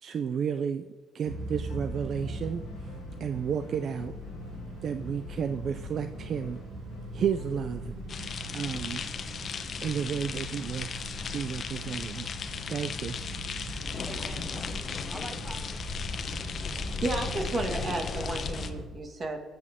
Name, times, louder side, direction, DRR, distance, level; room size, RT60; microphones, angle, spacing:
voice 1, 0.0-4.1 4.8-6.6 7.1-9.1 9.8-12.3 12.7-13.2, right 7 dB, 60° right, 10 dB, 0.5 m, -32 dB
sound 1, 1.2-18.8, right 1 dB, 80° right, 3.1 m, -40 dB
sound 2, 1.7-8.1 9.6-9.7, left 7 dB, 85° left, 1.3 m, -53 dB
sound 3, 8.1-18.7, left 6 dB, 55° left, 0.9 m, -36 dB
voice 2, 13.8-16.2, right 1 dB, 15° right, 6 dB, 1.4 m, -46 dB
voice 3, 17.0-19.5, right 2 dB, 40° right, 4 dB, 2.0 m, -32 dB
22.0 x 7.8 x 3.6 m, 1.5 s
cardioid pair, 90°, 0 cm